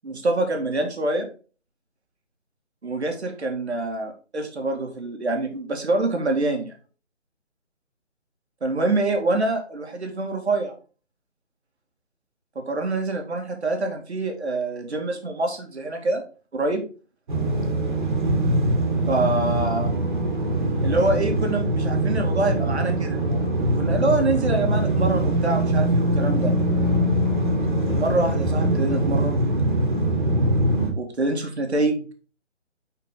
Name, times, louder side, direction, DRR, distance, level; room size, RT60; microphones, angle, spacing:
voice 1, 0.0-1.3 2.8-6.8 8.6-10.7 12.6-16.2 16.5-16.8 19.1-19.9 20.8-23.5 23.8-26.5 28.0-29.4 31.0-32.0, right 2 dB, 60° right, 3 dB, 2.2 m, -25 dB
sound 1, 17.3-30.9, right 1 dB, 40° right, 2.3 m, -22 dB
6.2 x 5.9 x 3.8 m, 0.36 s
figure-of-eight pair, 155°, 37 cm